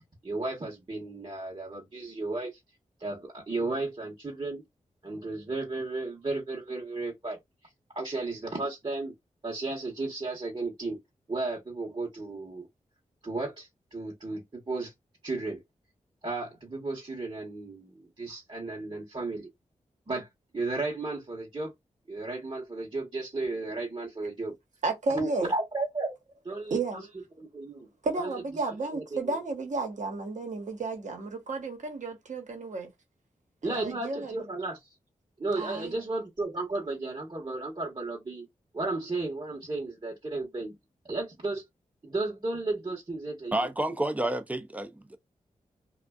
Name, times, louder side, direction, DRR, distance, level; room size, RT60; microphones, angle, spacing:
voice 1, 0.2-2.6 3.0-4.6 5.0-7.4 7.9-9.1 9.4-11.0 11.3-12.7 13.2-14.9 15.2-15.6 16.2-19.5 20.1-20.3 20.5-21.7 22.1-24.5 25.1-26.1 26.4-26.8 27.4-27.9 28.2-28.3 28.9-29.4 33.6-34.8 35.4-38.5 38.7-40.7 41.0-41.6 42.0-43.7, right 2 dB, 35° right, 1.0 m, -34 dB
voice 2, 24.8-25.5 26.7-27.1 28.0-32.9 33.6-34.4 35.6-36.0, right 3 dB, 60° right, 1.0 m, -33 dB
voice 3, 43.5-45.2, right 1 dB, 10° right, 0.5 m, -30 dB
2.5 x 2.3 x 2.3 m
cardioid pair, 40°, 14 cm